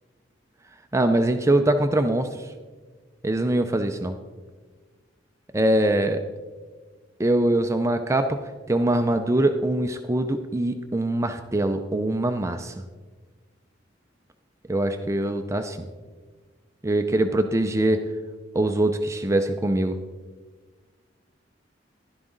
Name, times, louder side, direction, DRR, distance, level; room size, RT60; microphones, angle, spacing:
voice 1, 0.9-2.5 3.2-4.2 5.5-6.2 7.2-8.4 8.7-12.7 14.7-15.9 16.8-18.0 18.5-20.0, right 1 dB, 15° right, 7 dB, 0.5 m, -23 dB
11.5 x 11.0 x 3.8 m, 1.4 s
head